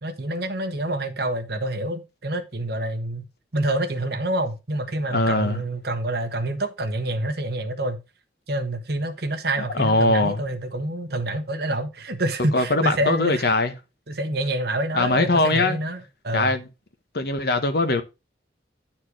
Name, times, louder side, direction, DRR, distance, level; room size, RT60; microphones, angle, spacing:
voice 1, 0.0-3.3 3.5-8.0 8.5-13.5 14.1-16.5, right 1 dB, 60° right, 1.2 m, -27 dB
voice 2, 5.1-5.6 9.7-10.4 12.5-13.7 14.9-15.8 16.3-16.7 17.1-18.0, left 2 dB, 60° left, 1.1 m, -21 dB
9.7 x 4.4 x 4.7 m
head